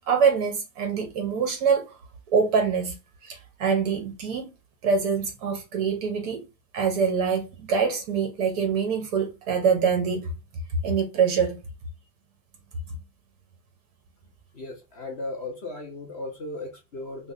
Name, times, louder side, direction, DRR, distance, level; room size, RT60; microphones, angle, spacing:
voice 1, 0.1-1.9 2.3-2.9 3.2-4.5 4.8-6.4 6.7-10.3 10.8-11.6, right 6 dB, 30° right, 0.5 m, -24 dB
voice 2, 14.6-17.3, left 2 dB, 30° left, 0.4 m, -36 dB
3.1 x 2.0 x 3.6 m
supercardioid pair, 175°, 43 cm